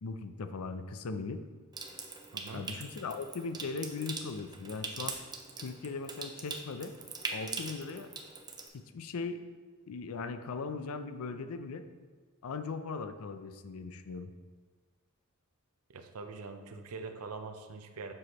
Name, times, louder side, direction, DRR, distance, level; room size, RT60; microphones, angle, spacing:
voice 1, 0.0-1.4 2.5-5.2 5.6-6.9 7.3-8.1 8.7-9.4 9.9-11.8 12.4-14.3, left 4 dB, 75° left, 9 dB, 0.5 m, -39 dB
Water tap faucet / Sink (filling or washing) / Trickle dribble, 1.7-8.7, right 4 dB, 20° right, 0.5 m, -42 dB
voice 2, 2.3-2.6 15.9-18.1, right 4 dB, 80° right, 7 dB, 0.6 m, -43 dB
7.6 x 6.1 x 3.0 m, 1.4 s
head